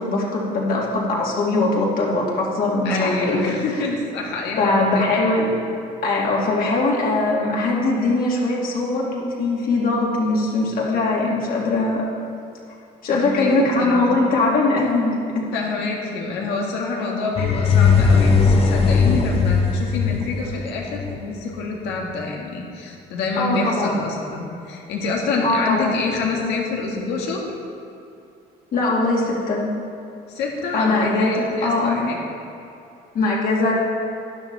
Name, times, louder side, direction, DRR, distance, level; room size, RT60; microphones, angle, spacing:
voice 1, 0.0-3.6 4.6-5.5 6.0-12.0 13.0-15.4 23.4-23.9 25.4-25.9 28.7-29.7 30.7-32.1 33.1-33.7, left 2 dB, 60° left, -3 dB, 2.7 m, -21 dB
voice 2, 2.8-4.9 13.1-13.5 13.8-14.0 15.5-27.4 30.3-32.2, left 3 dB, 85° left, -1 dB, 2.0 m, -26 dB
sound 1, 17.4-21.3, left 5 dB, 35° left, 1.2 m, -18 dB
12.0 x 10.5 x 4.1 m, 2.6 s
cardioid pair, 110°, 17 cm